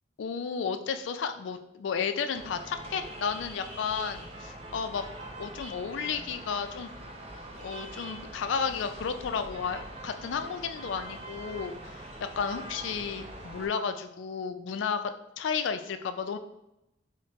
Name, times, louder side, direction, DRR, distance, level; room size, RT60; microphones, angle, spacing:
voice 1, 0.2-5.0 5.4-6.9 7.6-12.1 12.4-15.0 15.4-16.4, left 6 dB, 75° left, 9 dB, 0.3 m, -33 dB
sound 1, 2.3-13.7, right 1 dB, 30° right, 0.4 m, -43 dB
4.4 x 2.1 x 2.8 m, 0.87 s
head